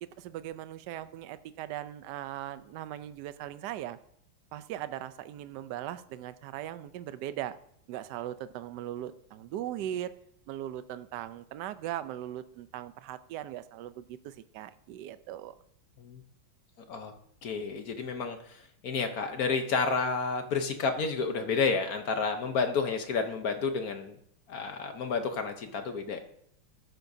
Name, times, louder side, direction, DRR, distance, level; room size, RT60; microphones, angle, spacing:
voice 1, 0.0-4.0 4.5-7.5 7.9-10.1 10.5-15.5, right 12 dB, 75° right, 13 dB, 0.9 m, -39 dB
voice 2, 17.4-24.1 24.5-26.2, left 5 dB, 60° left, 6 dB, 1.0 m, -30 dB
13.5 x 10.5 x 2.7 m, 0.68 s
omnidirectional pair, 2.4 m